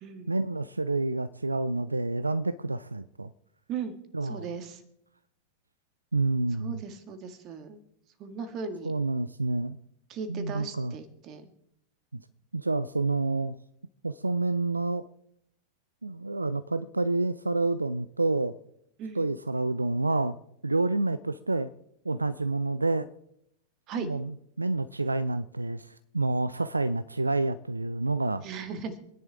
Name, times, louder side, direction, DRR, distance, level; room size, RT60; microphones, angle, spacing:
voice 1, 0.3-3.3 4.1-4.4 6.1-6.8 8.8-9.8 10.3-10.9 12.1-12.2 12.5-13.6 14.0-15.1 16.0-18.5 19.1-20.4 20.6-21.7 22.0-23.1 24.0-28.4, right 2 dB, 80° right, 0.4 m, -28 dB
voice 2, 4.2-4.8 6.6-7.8 8.2-8.9 10.1-11.5 19.0-19.2 23.9-24.1 28.4-29.0, right 5 dB, 35° right, 1.8 m, -37 dB
26.5 x 10.5 x 3.5 m
figure-of-eight pair, 90°, 0 cm